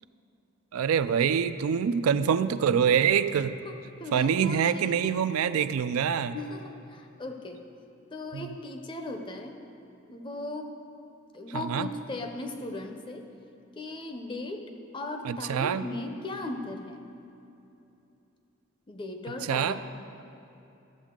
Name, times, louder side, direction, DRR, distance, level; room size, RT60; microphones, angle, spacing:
voice 1, 0.7-3.5 4.1-6.4 8.3-8.5 11.5-11.9 15.2-15.8 19.4-19.8, right 7 dB, 85° right, 12 dB, 0.3 m, -25 dB
voice 2, 3.6-5.1 6.3-7.6 8.1-9.6 10.1-10.8 11.3-13.3 13.8-14.6 14.9-17.0 18.9-19.9, left 2 dB, 20° left, 5 dB, 0.5 m, -37 dB
13.0 x 7.2 x 3.7 m, 2.9 s
head